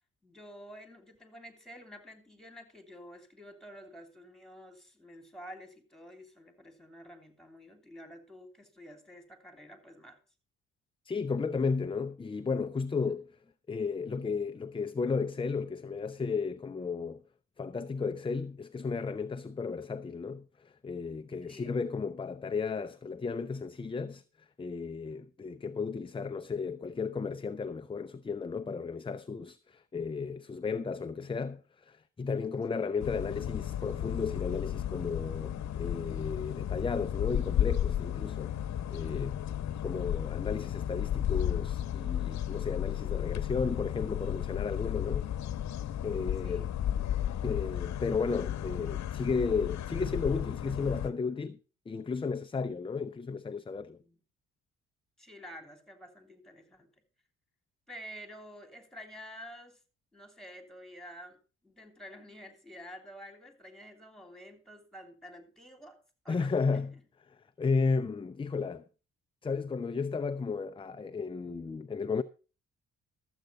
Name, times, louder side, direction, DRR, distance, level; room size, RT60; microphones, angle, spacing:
voice 1, 0.2-10.2 13.0-13.1 21.5-21.8 32.8-33.1 46.4-46.8 50.6-51.0 53.9-54.2 55.2-56.9 57.9-59.8 60.1-61.4 61.6-66.0 66.2-66.8, equal, ahead, 3.1 m, -50 dB
voice 2, 11.1-13.3 13.7-17.2 17.6-38.5 38.9-39.4 39.8-45.3 46.0-46.6 47.4-51.6 51.9-54.0 66.3-67.0 67.3-68.8 69.4-72.2, left 4 dB, 15° left, 0.5 m, -34 dB
sound 1, 33.0-51.1, left 11 dB, 65° left, 0.9 m, -33 dB
13.0 x 8.0 x 5.2 m
cardioid pair, 90°, 30 cm